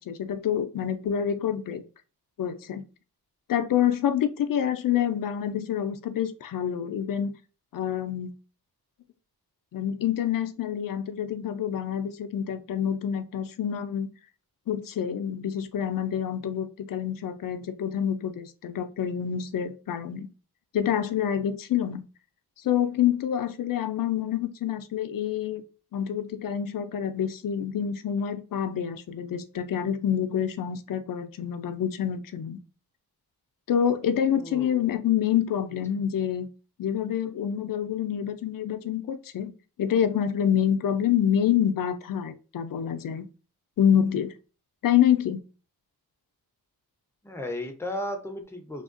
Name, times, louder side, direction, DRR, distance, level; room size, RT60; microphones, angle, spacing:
voice 1, 0.0-1.8 2.4-2.8 3.5-7.3 7.7-8.3 9.7-14.1 14.7-20.3 20.7-22.0 22.6-25.6 25.9-32.6 33.7-36.5 36.8-39.5 39.8-43.3 43.8-44.3 44.8-45.4, left 9 dB, 60° left, 0.5 m, -27 dB
voice 2, 34.3-34.9 47.2-48.8, left 1 dB, 5° left, 0.5 m, -35 dB
3.4 x 2.3 x 2.4 m
wide cardioid pair, 125°, 40 cm